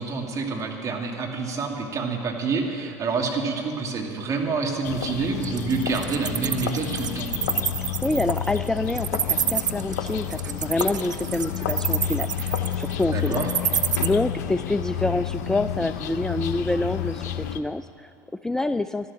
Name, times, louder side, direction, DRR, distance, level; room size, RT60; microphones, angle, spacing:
voice 1, 0.0-7.3 13.1-13.5, right 4 dB, 35° right, 1 dB, 2.6 m, -27 dB
sound 1, 4.8-17.6, left 9 dB, 70° left, 0.8 m, -30 dB
Wild animals, 5.4-14.1, right 8 dB, 90° right, 0.5 m, -27 dB
voice 2, 8.0-13.4 14.0-19.1, left 2 dB, 5° left, 12 dB, 0.3 m, -27 dB
12.5 x 11.5 x 8.9 m, 2.7 s
hypercardioid pair, 75°, 9 cm